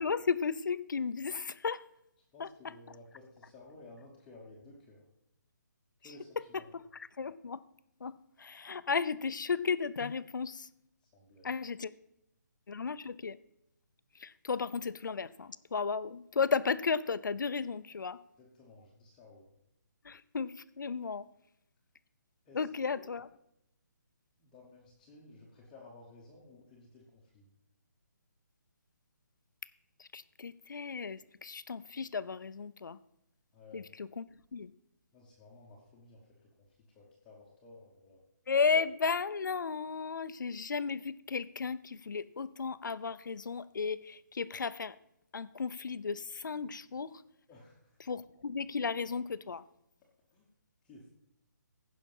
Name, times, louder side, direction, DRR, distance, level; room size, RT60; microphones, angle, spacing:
voice 1, 0.0-1.8 2.4-2.7 6.5-7.6 8.0-10.7 11.4-11.9 12.7-13.4 14.1-18.2 20.0-21.3 22.5-23.3 30.0-33.0 33.7-34.7 38.5-45.0 45.3-47.2 48.0-49.6, left 5 dB, 85° left, 15 dB, 0.6 m, -34 dB
voice 2, 2.3-5.0 6.0-6.7 11.0-11.5 18.4-19.5 22.4-23.1 24.4-27.5 33.5-33.8 35.1-38.2 47.5-48.0 50.3-50.5 50.8-51.1, left 2 dB, 5° left, -6 dB, 0.9 m, -55 dB
15.5 x 5.8 x 5.4 m, 0.82 s
hypercardioid pair, 180°, 10 cm